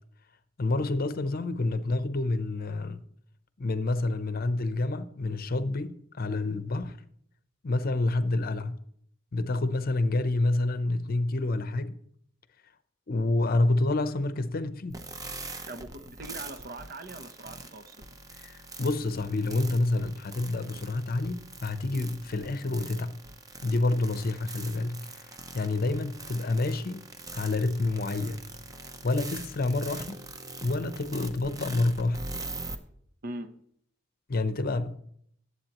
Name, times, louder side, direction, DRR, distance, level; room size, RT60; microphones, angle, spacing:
voice 1, 0.6-3.0 3.6-7.0 7.6-8.8 9.3-12.0 13.1-15.0 18.4-23.2 23.6-27.1 27.3-28.4 29.0-30.2 30.6-32.2 34.3-35.0, left 2 dB, 50° left, 0.7 m, -28 dB
sound 1, 14.9-32.8, right 3 dB, 20° right, 0.8 m, -42 dB
voice 2, 15.7-18.0 33.2-33.5, right 2 dB, 50° right, 0.9 m, -41 dB
19.5 x 8.2 x 3.0 m
head